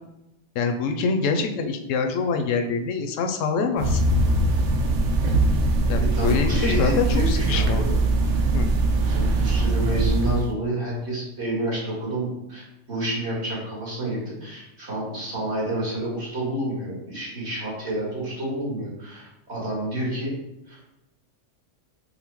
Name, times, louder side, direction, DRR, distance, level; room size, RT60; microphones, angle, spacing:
voice 1, 0.5-4.0 5.9-8.0 8.5-8.7, left 4 dB, 90° left, 5 dB, 1.0 m, -25 dB
sound 1, 3.8-10.5, right 2 dB, 80° right, 1.0 m, -21 dB
voice 2, 6.0-7.7 9.0-20.3 20.7-20.8, right 1 dB, 60° right, -5 dB, 2.0 m, -29 dB
5.4 x 2.1 x 4.5 m, 0.92 s
omnidirectional pair, 1.3 m